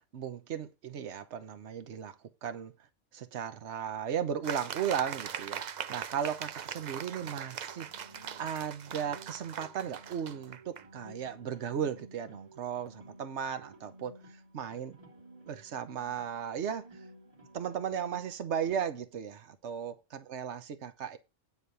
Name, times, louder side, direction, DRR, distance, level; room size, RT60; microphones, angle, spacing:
voice 1, 0.1-2.7 3.1-8.1 8.4-14.1 14.5-15.0 15.5-16.9 17.5-21.2, right 8 dB, 70° right, 1.2 m, -36 dB
sound 1, 4.4-10.9, right 8 dB, 50° right, 0.5 m, -41 dB
sound 2, 6.9-18.4, right 1 dB, 30° right, 2.7 m, -55 dB
9.5 x 4.2 x 6.7 m
omnidirectional pair, 1.2 m